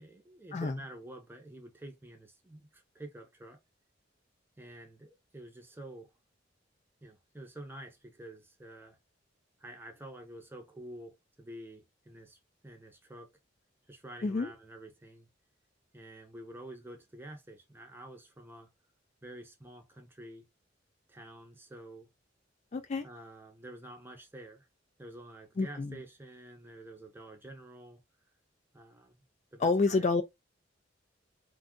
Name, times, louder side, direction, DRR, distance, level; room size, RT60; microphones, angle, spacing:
voice 1, 0.0-3.6 4.6-6.1 7.0-9.0 9.6-13.3 13.9-15.3 15.9-18.7 19.2-20.5 21.1-22.1 23.0-24.7 25.0-28.0 28.7-29.2 29.5-30.1, right 1 dB, 10° right, 0.6 m, -49 dB
voice 2, 22.7-23.1 25.6-26.0 29.6-30.2, left 3 dB, 35° left, 0.3 m, -28 dB
2.6 x 2.3 x 3.7 m
head